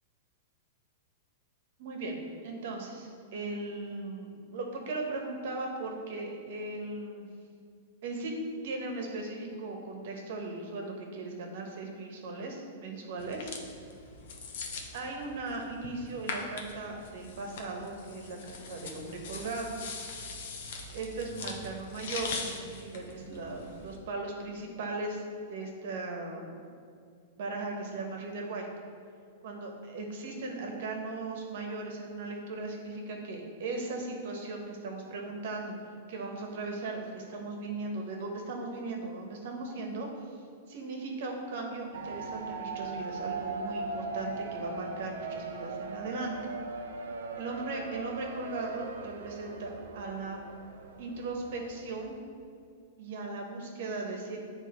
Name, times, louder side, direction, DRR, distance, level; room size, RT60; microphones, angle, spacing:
voice 1, 1.8-2.1 2.4-7.3 8.0-8.3 8.6-13.5 14.9-19.7 20.9-25.2 25.5-26.6 27.4-28.7 29.4-35.7 36.1-40.1 40.7-46.4 47.4-50.4 51.0-52.2 53.0-54.4, right 3 dB, 65° right, 2 dB, 1.2 m, -38 dB
sound 1, 13.2-23.9, left 4 dB, 65° left, 0.8 m, -42 dB
sound 2, 41.9-52.0, right 3 dB, 85° right, 0.5 m, -39 dB
8.5 x 3.3 x 4.3 m, 2.2 s
hypercardioid pair, 140°, 0 cm